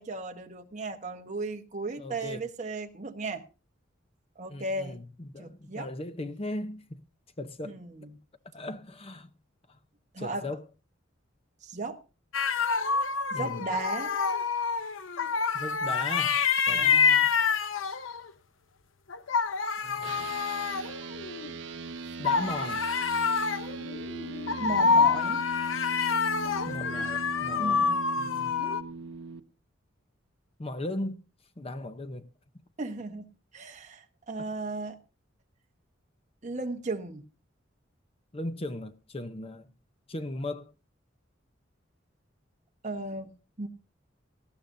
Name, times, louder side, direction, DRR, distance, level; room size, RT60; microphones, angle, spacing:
voice 1, 0.0-3.4 4.4-5.0 5.4-5.9 7.6-8.1 10.1-10.5 11.6-12.0 13.3-14.1 16.7-17.0 24.6-25.4 27.6-28.1 32.8-33.3 33.5-35.0 36.4-37.2 42.8-43.3 43.6-43.7, right 2 dB, 40° right, 1.1 m, -35 dB
voice 2, 2.0-2.4 4.5-7.0 7.4-7.8 8.5-9.3 9.7-9.8 10.2-10.6 13.3-13.6 15.5-16.4 16.7-17.3 19.8-20.3 22.2-22.8 26.7-27.8 28.2-28.5 30.6-31.2 31.6-32.3 38.3-39.7 40.1-40.7, left 1 dB, 30° left, 0.7 m, -37 dB
sound 1, 12.3-18.3 19.1-21.5 22.2-28.8, left 5 dB, 90° left, 0.8 m, -27 dB
sound 2, 20.0-29.4, right 3 dB, 65° right, 0.7 m, -39 dB
18.5 x 14.5 x 2.7 m
head